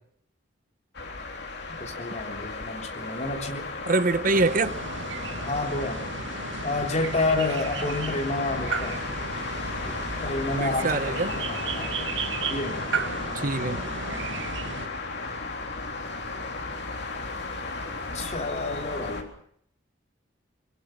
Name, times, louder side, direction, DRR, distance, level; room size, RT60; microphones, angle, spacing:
sound 1, 0.9-19.2, left 3 dB, 60° left, 3.7 m, -34 dB
voice 1, 1.7-3.7 5.4-6.1 6.6-9.0 9.9-11.9 12.5-12.9 18.1-19.3, left 2 dB, 35° left, 3.6 m, -30 dB
voice 2, 3.8-4.8 10.5-11.4 13.3-13.8, right 3 dB, 45° right, 0.9 m, -25 dB
sound 2, 4.2-14.9, right 4 dB, 65° right, 2.3 m, -34 dB
23.5 x 23.0 x 5.9 m
head